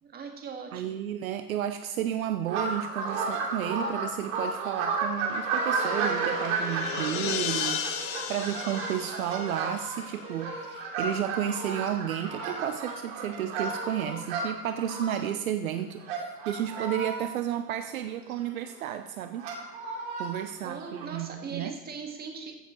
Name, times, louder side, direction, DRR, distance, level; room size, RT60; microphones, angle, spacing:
voice 1, 0.0-1.1 20.6-22.5, right 5 dB, 20° right, 3 dB, 1.9 m, -40 dB
voice 2, 0.7-19.5 20.2-21.8, right 10 dB, 65° right, 9 dB, 0.9 m, -32 dB
sound 1, 2.5-15.3 16.0-17.3 17.9-18.0 18.3-18.4 18.8-18.9 19.4-20.3 20.8-21.1, right 4 dB, 50° right, 2.7 m, -33 dB
sound 2, 5.8-10.4, left 9 dB, 45° left, 1.3 m, -35 dB
15.0 x 6.7 x 4.6 m, 0.94 s
hypercardioid pair, 115°, 46 cm